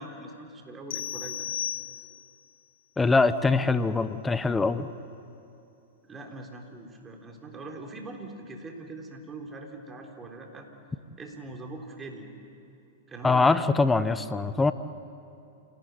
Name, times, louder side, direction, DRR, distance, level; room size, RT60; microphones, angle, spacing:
voice 1, 0.0-1.6 6.0-10.7 11.2-12.3 13.1-13.7, right 2 dB, 20° right, 2 dB, 3.8 m, -42 dB
sound 1, 0.9-2.4, left 10 dB, 65° left, 0.9 m, -35 dB
voice 2, 3.0-4.9 13.2-14.7, left 3 dB, 10° left, 13 dB, 1.0 m, -23 dB
28.0 x 18.5 x 9.4 m, 2.6 s
hypercardioid pair, 110°, 0 cm